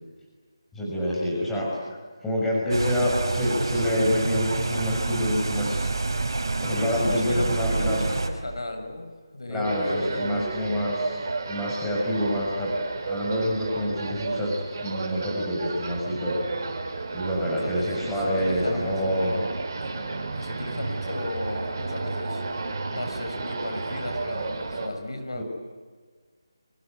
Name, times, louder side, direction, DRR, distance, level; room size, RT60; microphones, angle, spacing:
voice 1, 0.7-1.7 2.2-5.8 6.6-8.1 9.5-11.2 11.5-12.7 13.0-14.5 14.8-16.4 17.1-19.3 25.3-25.4, equal, 5° left, -5 dB, 6.0 m, -27 dB
sound 1, 2.7-8.3, right 3 dB, 60° right, 4.8 m, -27 dB
voice 2, 6.6-10.7 17.4-19.5 19.9-25.4, left 1 dB, 75° left, 5 dB, 7.4 m, -34 dB
sound 2, 9.6-24.9, right 3 dB, 45° right, 5.1 m, -32 dB
29.5 x 24.5 x 8.2 m, 1.5 s
figure-of-eight pair, 160°, 3 cm